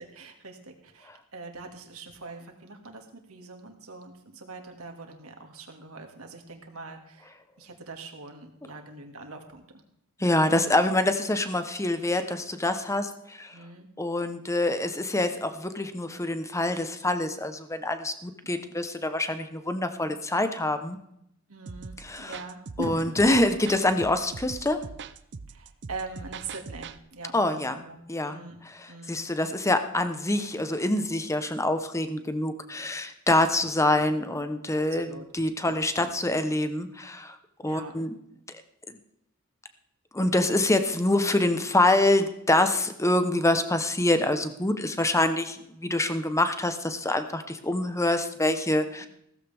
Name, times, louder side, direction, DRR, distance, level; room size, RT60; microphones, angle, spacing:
voice 1, 0.0-9.6 13.5-13.9 18.4-18.7 21.5-23.2 25.5-28.0 28.3-28.6 28.9-29.3 34.9-35.3 35.7-36.2 37.7-37.9 49.0-49.1, right 3 dB, 75° right, 4 dB, 2.2 m, -42 dB
voice 2, 10.2-13.5 14.0-21.0 22.0-22.4 22.8-24.8 27.3-27.8 28.1-28.4 28.8-37.3 37.6-38.2 40.1-49.1, left 1 dB, 15° left, 9 dB, 0.9 m, -25 dB
sound 1, 21.7-27.0, right 4 dB, 55° right, 0.6 m, -42 dB
16.0 x 14.5 x 3.5 m, 0.76 s
head